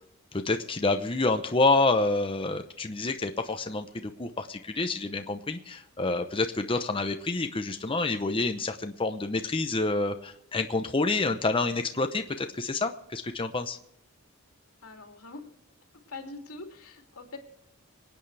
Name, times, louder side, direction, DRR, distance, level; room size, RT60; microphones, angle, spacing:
voice 1, 0.3-13.8, left 3 dB, 25° left, 6 dB, 0.8 m, -28 dB
voice 2, 14.8-15.5 16.1-17.4, left 3 dB, 90° left, 3 dB, 2.8 m, -43 dB
26.5 x 9.2 x 3.4 m, 0.78 s
head